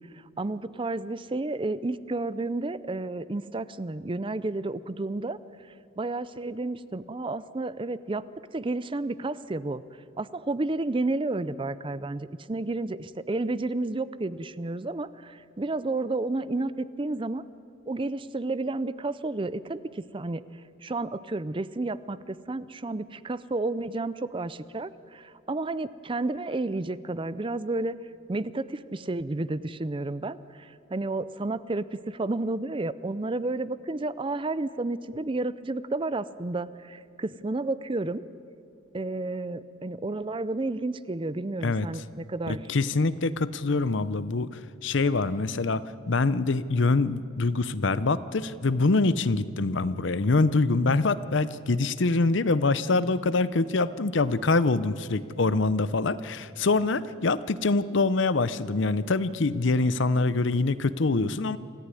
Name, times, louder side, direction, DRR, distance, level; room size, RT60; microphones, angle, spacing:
voice 1, 0.1-5.4 6.0-8.3 8.5-9.8 10.2-17.4 17.9-20.4 20.8-28.0 28.3-38.2 38.9-42.7, right 2 dB, 25° right, 16 dB, 0.5 m, -31 dB
voice 2, 42.5-61.6, left 3 dB, 60° left, 16 dB, 0.7 m, -25 dB
26.5 x 15.0 x 9.9 m, 2.5 s
head